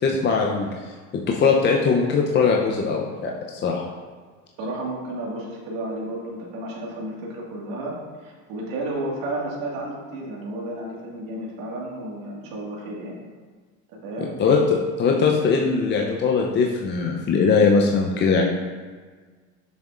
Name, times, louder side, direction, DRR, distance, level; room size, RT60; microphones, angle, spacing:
voice 1, 0.0-0.9 1.3-3.9 14.2-18.5, left 5 dB, 25° left, 0 dB, 0.6 m, -21 dB
voice 2, 4.6-8.0 8.2-13.2 14.0-14.3, right 1 dB, 55° right, -3 dB, 1.8 m, -32 dB
6.9 x 6.2 x 2.5 m, 1.5 s
hypercardioid pair, 95°, 41 cm